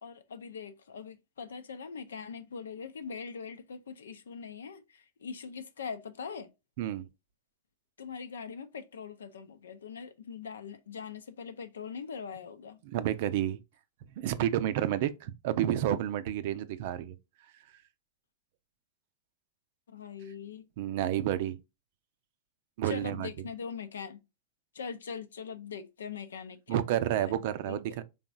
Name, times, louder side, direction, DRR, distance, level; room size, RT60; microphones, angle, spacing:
voice 1, 0.0-6.5 8.0-12.8 19.9-20.7 22.8-24.2 24.7-28.0, left 6 dB, 75° left, 0.6 m, -42 dB
voice 2, 12.8-13.6 14.2-17.2 20.8-21.6 22.8-23.3 26.7-28.0, right 11 dB, 55° right, 0.5 m, -30 dB
4.0 x 3.5 x 2.4 m
figure-of-eight pair, 95°, 0 cm